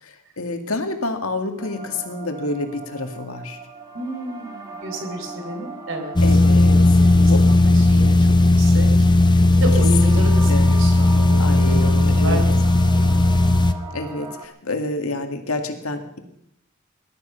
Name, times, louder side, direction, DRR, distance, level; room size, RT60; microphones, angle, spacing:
voice 1, 0.0-3.6 6.2-6.8 7.3-7.4 10.0-10.7 11.4-12.4 13.9-16.2, left 2 dB, 90° left, 6 dB, 2.0 m, -28 dB
sound 1, 1.6-14.4, right 3 dB, 20° right, 2.1 m, -38 dB
voice 2, 3.9-6.4 6.7-8.9 9.5-13.2, right 1 dB, 65° right, 4 dB, 4.0 m, -31 dB
sound 2, 6.2-13.7, left 2 dB, 20° left, 0.8 m, -15 dB
19.5 x 12.5 x 5.7 m, 0.74 s
head